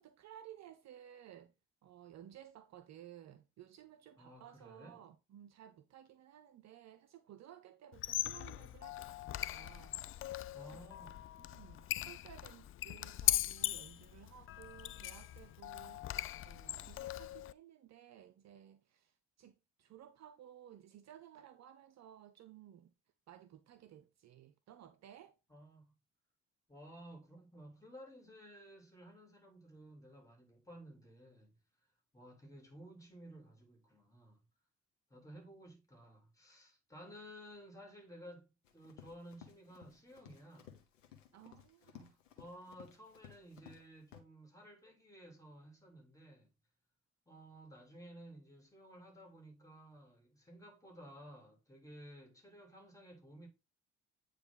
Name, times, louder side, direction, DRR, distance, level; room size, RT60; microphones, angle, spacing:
voice 1, 0.0-1.5 1.8-10.4 10.7-10.8 11.4-22.9 23.3-25.4 41.3-42.2, right 11 dB, 45° right, 0.6 m, -57 dB
voice 2, 4.2-5.0 10.5-11.2 25.5-26.0 26.7-31.5 32.1-34.4 35.1-40.8 42.4-46.5 47.3-53.5, equal, 10° left, 3.2 m, -55 dB
Squeak, 7.9-17.5, left 13 dB, 35° left, 0.4 m, -39 dB
Run, 38.6-43.8 44.1-44.2, left 9 dB, 75° left, 1.1 m, -58 dB
9.1 x 3.2 x 3.8 m
figure-of-eight pair, 45°, 38 cm